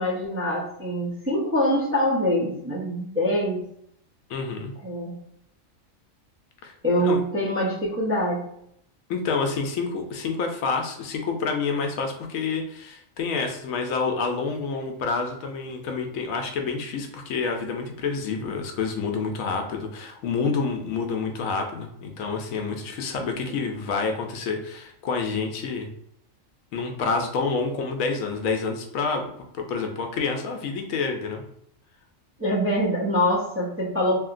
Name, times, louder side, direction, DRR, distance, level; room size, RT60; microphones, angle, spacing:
voice 1, 0.0-3.6 4.8-5.2 6.8-8.4 32.4-34.1, equal, 20° right, -7 dB, 0.4 m, -24 dB
voice 2, 4.3-4.7 6.6-6.7 7.0-7.2 9.1-25.9 26.7-29.3 29.5-31.4, left 4 dB, 80° left, 4 dB, 1.0 m, -28 dB
2.8 x 2.7 x 2.4 m, 0.73 s
omnidirectional pair, 1.4 m